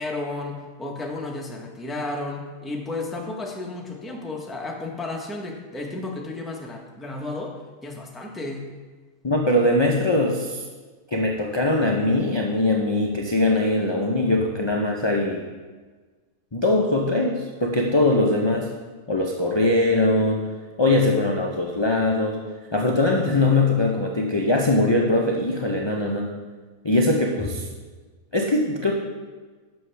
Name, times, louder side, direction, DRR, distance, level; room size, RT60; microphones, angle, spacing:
voice 1, 0.0-8.7, left 2 dB, ahead, 0 dB, 0.7 m, -33 dB
voice 2, 9.2-10.6 11.1-15.4 16.5-18.7 19.1-20.5 20.8-22.4 22.7-26.3 26.8-27.7 28.3-28.9, left 2 dB, 45° left, -1 dB, 0.3 m, -21 dB
11.0 x 6.2 x 3.4 m, 1.4 s
omnidirectional pair, 1.6 m